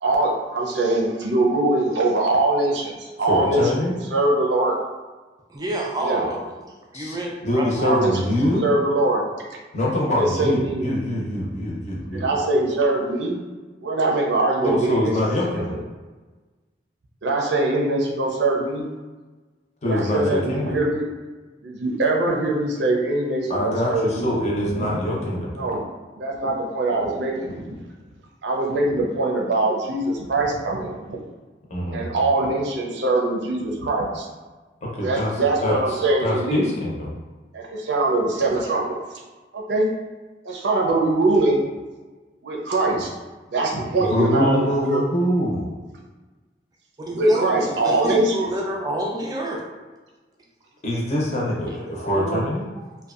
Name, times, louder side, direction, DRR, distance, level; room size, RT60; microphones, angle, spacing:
voice 1, 0.0-4.7 6.0-6.2 7.8-8.1 8.4-9.2 10.2-10.9 12.1-13.4 13.8-15.1 15.5-15.6 17.2-18.9 19.8-21.1 21.6-24.3 24.8-24.9 25.6-25.9 26.2-27.8 28.4-31.2 31.9-34.3 35.0-36.7 37.5-39.0 39.5-39.9 40.4-41.6 42.4-43.1 43.5-45.0 47.0-48.5 52.0-52.4, right 2 dB, 85° right, 0 dB, 0.5 m, -22 dB
voice 2, 3.3-3.9 6.9-7.2 7.4-8.6 9.7-12.2 14.6-15.8 19.8-20.8 23.5-25.7 31.7-32.1 34.8-35.3 35.6-37.1 44.0-45.7 50.8-52.7, left 1 dB, 40° left, -4 dB, 0.6 m, -24 dB
voice 3, 5.5-6.6 6.9-7.7 47.1-49.6 52.8-52.9, right 1 dB, 20° right, -1 dB, 0.3 m, -28 dB
2.6 x 2.2 x 2.4 m, 1.3 s
head